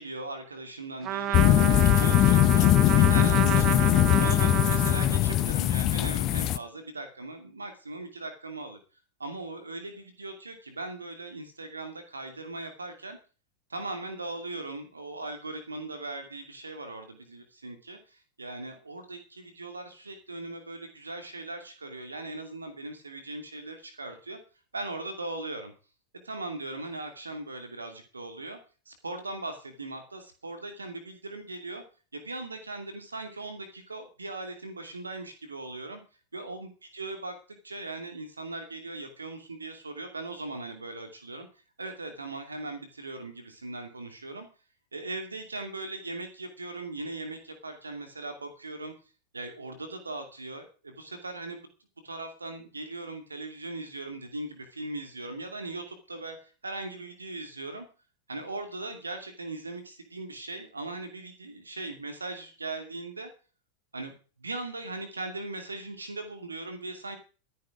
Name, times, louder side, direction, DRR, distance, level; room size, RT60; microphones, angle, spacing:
voice 1, 0.0-3.9 4.2-8.8 9.2-13.2 13.7-24.4 24.7-25.7 26.2-28.6 28.9-31.8 32.1-36.0 36.3-41.5 41.8-44.5 44.9-48.9 49.3-51.6 52.0-57.9 58.3-63.3 63.9-67.2, right 2 dB, 75° right, 6 dB, 2.5 m, -39 dB
Trumpet, 1.0-5.6, right 12 dB, 35° right, 0.9 m, -31 dB
sound 1, 1.3-6.6, left 14 dB, 35° left, 0.7 m, -21 dB
13.0 x 10.5 x 5.0 m, 0.35 s
figure-of-eight pair, 90°, 0 cm